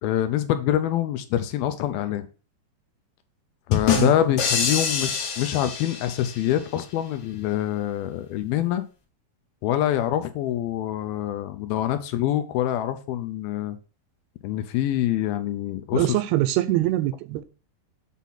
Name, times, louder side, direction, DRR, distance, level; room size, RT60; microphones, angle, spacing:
voice 1, 0.0-2.3 3.7-8.8 9.6-13.8 14.4-16.2, left 12 dB, 80° left, 2.3 m, -25 dB
sound 1, 3.7-6.5, left 7 dB, 60° left, 2.3 m, -25 dB
voice 2, 15.9-17.4, right 14 dB, 80° right, 2.5 m, -23 dB
8.3 x 4.1 x 5.7 m
omnidirectional pair, 4.8 m